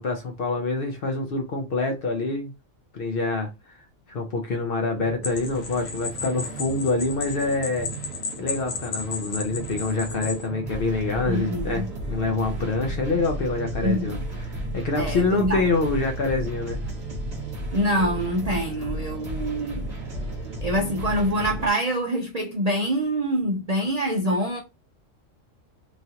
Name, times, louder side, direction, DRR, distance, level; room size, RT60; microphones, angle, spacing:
voice 1, 0.0-2.5 2.9-3.8 4.1-7.9 8.4-16.8, left 3 dB, 55° left, 0.7 m, -26 dB
sound 1, 4.9-21.7, right 1 dB, 35° right, 1.1 m, -34 dB
sound 2, 5.2-10.5, left 5 dB, 90° left, 1.1 m, -34 dB
voice 2, 11.3-11.9 13.8-14.2 15.0-15.6 17.7-19.9 20.6-24.6, right 1 dB, 50° right, 0.4 m, -25 dB
3.0 x 2.4 x 2.8 m
omnidirectional pair, 1.3 m